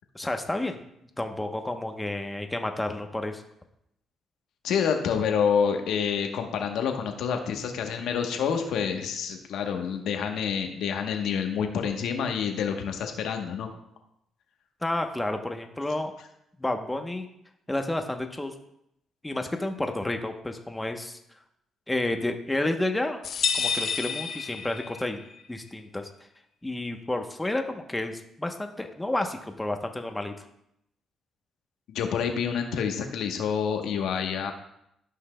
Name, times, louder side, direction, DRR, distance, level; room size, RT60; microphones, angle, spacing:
voice 1, 0.1-0.8 1.2-3.4 14.8-16.1 16.6-17.3 17.7-18.5 19.2-21.2 21.9-23.2 23.5-25.2 25.5-26.1 26.6-30.3, left 1 dB, 10° left, 5 dB, 0.9 m, -30 dB
voice 2, 4.6-13.7 31.9-34.5, left 7 dB, 80° left, 4 dB, 1.0 m, -28 dB
sound 1, 23.2-25.2, left 6 dB, 60° left, 0.7 m, -29 dB
13.5 x 5.7 x 2.2 m, 0.78 s
cardioid pair, 90°, 0 cm